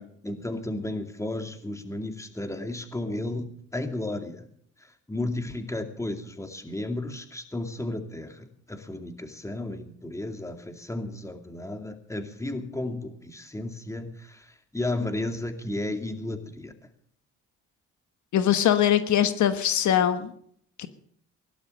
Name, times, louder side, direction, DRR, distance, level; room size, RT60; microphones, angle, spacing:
voice 1, 0.0-3.5 3.7-4.5 5.1-16.7, left 2 dB, 10° left, 6 dB, 2.4 m, -33 dB
voice 2, 18.3-20.3 20.8-20.9, left 10 dB, 70° left, 10 dB, 1.3 m, -22 dB
17.5 x 12.0 x 6.6 m, 0.65 s
cardioid pair, 90°, 30 cm